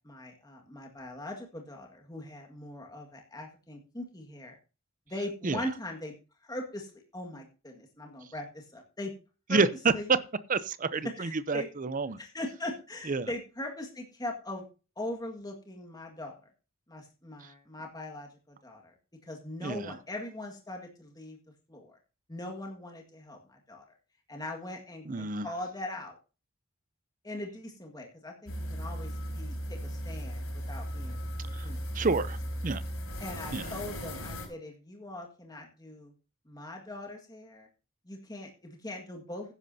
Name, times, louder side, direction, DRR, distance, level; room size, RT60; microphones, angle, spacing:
voice 1, 0.0-4.6 5.1-6.1 6.4-9.1 9.5-9.6 9.9-10.1 11.0-11.7 12.2-14.6 15.0-16.3 16.9-18.9 19.2-21.4 21.7-22.0 22.3-23.8 24.3-26.2 27.2-31.2 31.6-31.8 33.2-36.1 36.4-37.7 38.0-39.5, left 1 dB, 20° left, 1.8 m, -40 dB
voice 2, 10.5-12.2 13.1-13.3 19.6-19.9 25.1-25.5 31.6-31.7 31.9-32.4 32.6-32.8 33.5-33.6, right 4 dB, 40° right, 0.6 m, -29 dB
sound 1, 28.5-34.5, equal, 90° left, 4.6 m, -37 dB
15.0 x 10.5 x 2.8 m
head